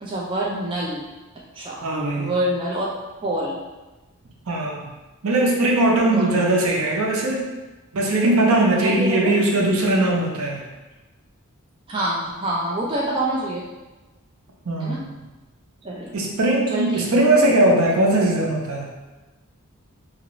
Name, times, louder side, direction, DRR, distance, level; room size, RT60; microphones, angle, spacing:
voice 1, 0.0-1.0 1.5-1.8 2.1-2.9 3.2-3.6 6.1-6.4 8.8-9.3 11.9-13.6 14.8-15.0 15.8-16.1 16.7-17.3, right 1 dB, 25° right, -4 dB, 0.3 m, -26 dB
voice 2, 1.8-2.3 4.5-4.9 5.2-7.5 7.9-10.6 14.7-15.2 16.1-18.9, right 1 dB, 75° right, -1 dB, 0.6 m, -20 dB
2.8 x 2.5 x 3.0 m, 1.1 s
head